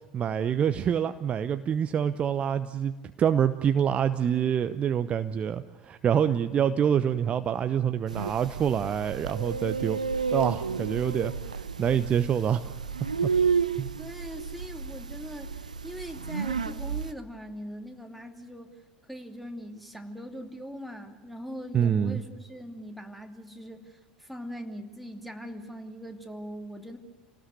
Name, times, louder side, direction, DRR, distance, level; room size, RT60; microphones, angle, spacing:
voice 1, 0.1-10.0 10.3-12.7 13.2-13.3 13.8-14.0 21.7-22.2, right 8 dB, 30° right, 10 dB, 0.9 m, -26 dB
sound 1, 8.1-17.1, right 6 dB, 80° right, 0.8 m, -31 dB
voice 2, 14.0-18.7 19.1-27.0, equal, ahead, 3 dB, 2.8 m, -41 dB
29.0 x 18.5 x 9.3 m, 1.1 s
figure-of-eight pair, 75°, 4 cm